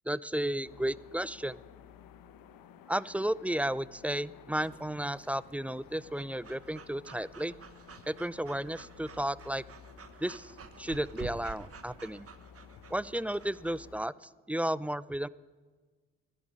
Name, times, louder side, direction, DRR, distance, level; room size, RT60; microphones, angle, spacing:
voice 1, 0.1-1.6 2.9-7.5 8.1-9.6 10.2-10.5 10.8-12.3 12.9-15.3, right 1 dB, 5° right, 20 dB, 0.4 m, -33 dB
sound 1, 0.6-14.0, left 8 dB, 75° left, 1.1 m, -54 dB
Breathing / Dog, 4.6-13.8, right 5 dB, 40° right, 1.3 m, -50 dB
13.0 x 11.0 x 9.7 m, 1.4 s
hypercardioid pair, 55°, 34 cm